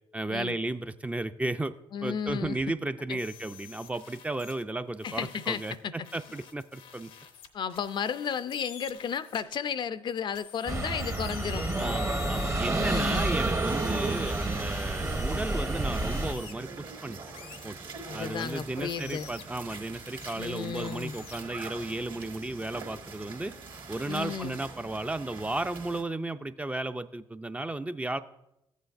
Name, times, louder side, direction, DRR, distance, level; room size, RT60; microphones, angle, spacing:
voice 1, 0.1-1.7 2.0-7.1 11.8-17.2 17.6-17.8 18.1-23.5 23.9-28.2, right 2 dB, 15° right, 10 dB, 0.4 m, -34 dB
voice 2, 1.9-2.6 3.1-3.2 5.0-6.1 7.5-11.7 12.7-13.3 18.1-19.3 20.4-21.1 24.1-24.6, left 7 dB, 55° left, 14 dB, 0.4 m, -33 dB
sound 1, 3.2-4.6 5.0-9.4 10.3-16.5 17.3-18.5 18.9-20.3 20.7-21.4, left 7 dB, 90° left, 0.8 m, -47 dB
sound 2, 10.7-16.3, right 2 dB, 30° right, 0.8 m, -29 dB
sound 3, 13.6-26.0, right 4 dB, 60° right, 1.7 m, -44 dB
14.0 x 8.2 x 2.5 m, 0.86 s
cardioid pair, 70°, 10 cm